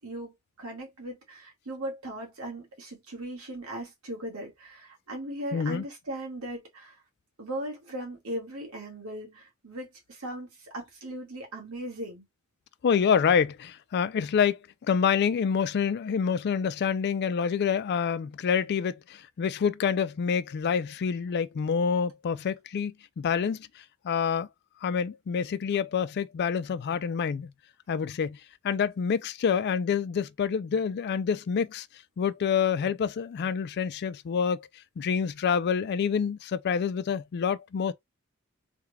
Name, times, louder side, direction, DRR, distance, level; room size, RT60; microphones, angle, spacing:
voice 1, 0.0-7.0 7.4-12.3, right 1 dB, 70° right, 1.6 m, -38 dB
voice 2, 5.5-5.8 12.8-24.5 24.8-27.5 27.9-28.4 28.6-31.9 32.2-34.7 35.0-37.9, left 6 dB, 50° left, 0.3 m, -27 dB
3.5 x 2.2 x 3.3 m
head